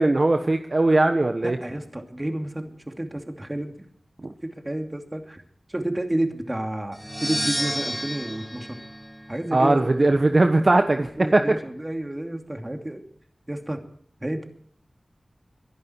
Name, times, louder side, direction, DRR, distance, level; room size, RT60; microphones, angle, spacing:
voice 1, 0.0-1.6 4.2-4.3 9.5-11.4, right 2 dB, 50° right, 6 dB, 1.2 m, -19 dB
voice 2, 1.4-3.7 4.4-5.4 5.7-8.8 9.3-9.9 11.0-13.0 13.5-13.8 14.2-14.5, right 1 dB, 25° right, 4 dB, 2.7 m, -30 dB
sound 1, 6.9-9.8, equal, 5° right, 2.8 m, -31 dB
22.5 x 11.0 x 4.6 m, 0.63 s
wide cardioid pair, 55°, 0 cm